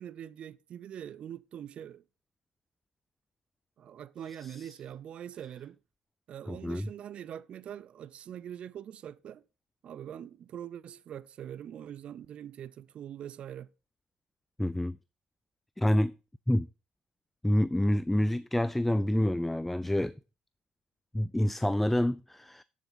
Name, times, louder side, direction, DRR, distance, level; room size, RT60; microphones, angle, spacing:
voice 1, 0.0-2.0 3.8-5.8 6.3-9.4 9.8-13.7, right 10 dB, 50° right, 0.5 m, -43 dB
voice 2, 4.4-4.7 6.5-6.9 14.6-15.0 15.8-16.2 16.5-16.7 17.4-20.1 21.1-22.6, left 1 dB, 5° left, 0.3 m, -27 dB
7.7 x 7.3 x 3.9 m
supercardioid pair, 85°, 2 cm